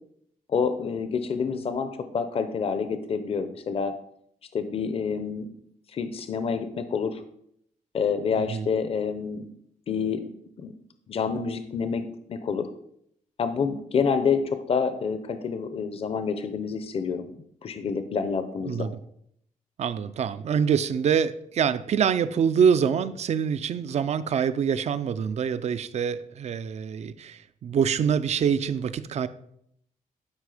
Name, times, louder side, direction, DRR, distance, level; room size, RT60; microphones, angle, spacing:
voice 1, 0.5-3.9 4.5-5.5 5.9-7.2 7.9-9.5 9.9-10.3 10.6-10.7 11.1-12.0 12.3-12.7 13.4-17.4 17.6-18.9, left 6 dB, 40° left, 10 dB, 0.7 m, -28 dB
voice 2, 8.4-8.7 18.7-19.0 19.8-29.3, right 7 dB, 50° right, 14 dB, 0.5 m, -25 dB
11.5 x 5.2 x 5.0 m, 0.72 s
wide cardioid pair, 160°, 14 cm